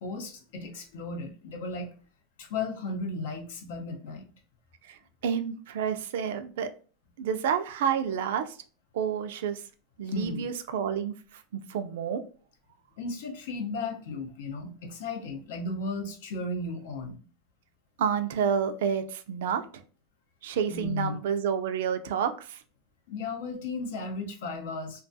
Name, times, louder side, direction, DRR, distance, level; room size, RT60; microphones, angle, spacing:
voice 1, 0.0-1.9 2.4-4.2 10.1-10.4 13.0-17.2 20.7-21.2 23.1-25.0, left 3 dB, 80° left, 4 dB, 0.6 m, -35 dB
voice 2, 5.2-6.7 7.2-8.5 8.9-9.6 10.0-11.1 11.7-12.2 18.0-19.6 20.4-22.6, right 7 dB, 80° right, 9 dB, 0.3 m, -29 dB
2.3 x 2.3 x 2.6 m, 0.39 s
supercardioid pair, 135°, 0 cm